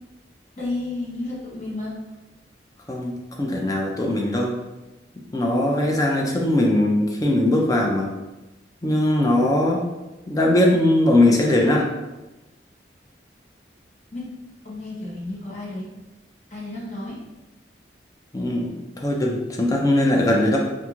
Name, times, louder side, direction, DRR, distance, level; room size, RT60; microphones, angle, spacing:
voice 1, 0.6-2.0 14.1-14.3 14.6-15.9 16.5-17.2, left 2 dB, 40° left, -6 dB, 0.8 m, -32 dB
voice 2, 2.9-4.6 5.3-8.1 8.8-9.8 10.3-11.9 18.3-18.7 19.0-20.6, left 1 dB, 20° left, -1 dB, 0.3 m, -20 dB
3.0 x 2.5 x 2.3 m, 1.1 s
head